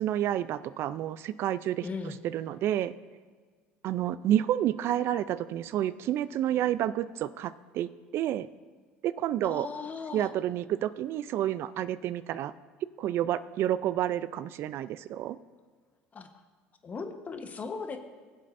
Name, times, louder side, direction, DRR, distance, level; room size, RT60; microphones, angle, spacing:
voice 1, 0.0-1.8 2.3-2.9 3.8-8.5 9.0-9.7 10.1-12.5 13.0-15.4, right 12 dB, 60° right, 15 dB, 0.4 m, -29 dB
voice 2, 1.8-2.2 9.4-10.3 16.1-16.3 16.8-18.0, left 4 dB, 35° left, 7 dB, 1.0 m, -37 dB
18.5 x 7.6 x 2.6 m, 1.5 s
supercardioid pair, 85°, 5 cm